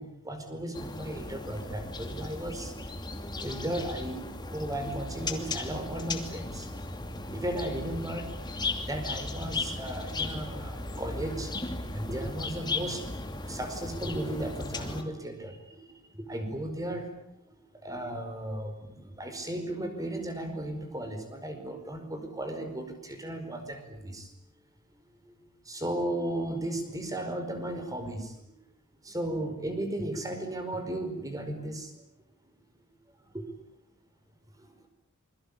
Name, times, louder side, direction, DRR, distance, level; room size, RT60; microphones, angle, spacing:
voice 1, 0.0-3.1 3.4-6.7 7.2-8.4 8.8-13.1 13.5-24.3 24.9-28.4 29.0-32.0 33.2-33.4 34.6-34.9, right 1 dB, 15° right, 7 dB, 5.0 m, -36 dB
sound 1, 0.7-15.0, left 2 dB, 20° left, 2.7 m, -36 dB
27.5 x 23.0 x 8.6 m, 0.77 s
head